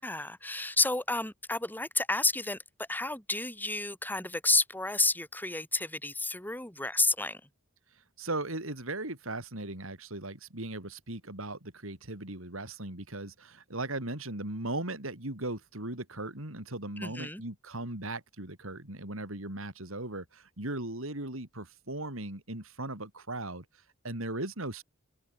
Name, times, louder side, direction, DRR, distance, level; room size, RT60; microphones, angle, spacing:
voice 1, 0.0-7.4 17.0-17.4, left 2 dB, 10° left, 7.8 m, -30 dB
voice 2, 8.2-23.6 24.0-24.8, right 2 dB, 75° right, 4.8 m, -38 dB
head